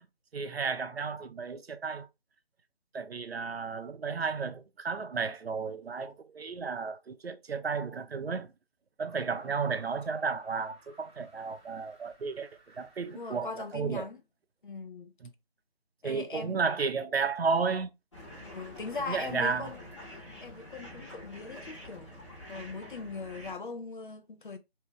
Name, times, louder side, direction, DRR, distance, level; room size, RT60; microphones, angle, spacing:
voice 1, 0.3-2.1 2.9-8.5 9.0-12.5 12.8-14.1 15.2-15.3 16.0-17.9 19.1-19.7, right 5 dB, 80° right, 0.6 m, -33 dB
sound 1, 9.0-13.5, right 1 dB, 10° right, 0.8 m, -60 dB
voice 2, 13.1-14.2 14.6-15.1 16.0-16.6 18.4-19.8 20.4-22.1 22.5-24.6, left 4 dB, 55° left, 0.6 m, -40 dB
sound 2, 18.1-23.5, left 1 dB, 30° left, 1.0 m, -47 dB
2.7 x 2.3 x 3.4 m
figure-of-eight pair, 160°, 31 cm